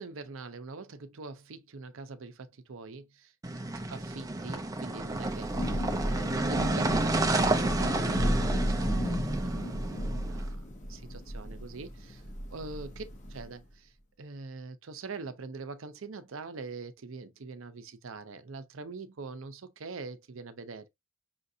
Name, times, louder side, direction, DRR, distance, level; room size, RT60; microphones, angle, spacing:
voice 1, 0.0-3.3 3.9-12.2 12.5-13.0 13.3-20.9, right 3 dB, 65° right, 0.6 m, -43 dB
sound 1, 3.4-10.4, right 2 dB, 15° right, 0.4 m, -30 dB
Thunder / Rain, 5.0-13.6, equal, 35° left, 0.6 m, -34 dB
5.6 x 2.5 x 2.6 m
head